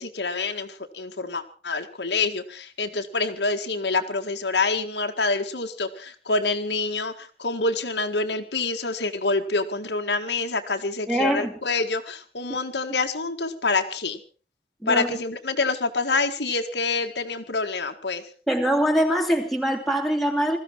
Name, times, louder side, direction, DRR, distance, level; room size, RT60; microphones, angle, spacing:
voice 1, 0.0-14.2 14.9-18.2, left 3 dB, 80° left, 1.9 m, -27 dB
voice 2, 11.1-11.6 14.8-15.2 18.5-20.6, equal, ahead, 2.6 m, -23 dB
20.5 x 14.5 x 4.6 m
head